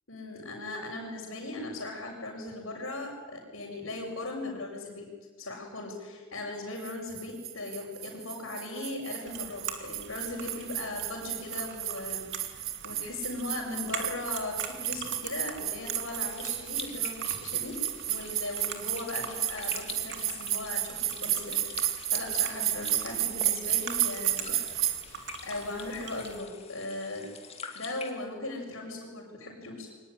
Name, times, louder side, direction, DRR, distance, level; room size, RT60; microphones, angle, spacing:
voice 1, 0.1-5.1 5.4-17.8 18.1-24.7 25.1-27.3 27.7-29.9, left 2 dB, 65° left, -6 dB, 6.1 m, -38 dB
sound 1, 6.8-25.0, right 13 dB, 70° right, 1.5 m, -33 dB
sound 2, 9.2-26.4, right 6 dB, 55° right, 2.7 m, -44 dB
sound 3, 16.2-28.1, left 6 dB, 30° left, 2.4 m, -46 dB
23.5 x 19.5 x 10.0 m, 1.5 s
head